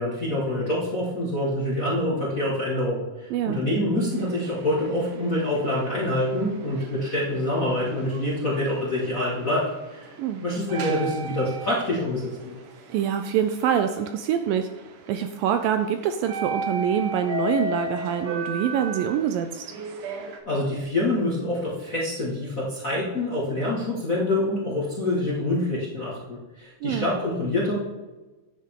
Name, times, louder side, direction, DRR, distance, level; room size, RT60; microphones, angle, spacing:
voice 1, 0.0-10.1 10.4-12.6 20.4-27.8, left 1 dB, 35° left, -6 dB, 1.3 m, -26 dB
voice 2, 3.3-3.6 10.2-10.4 12.9-14.7 15.1-19.6 26.8-27.1, right 9 dB, 80° right, 8 dB, 2.1 m, -25 dB
sound 1, 4.1-20.4, right 1 dB, 65° right, 2.3 m, -37 dB
10.0 x 9.6 x 3.7 m, 1.2 s
omnidirectional pair, 4.4 m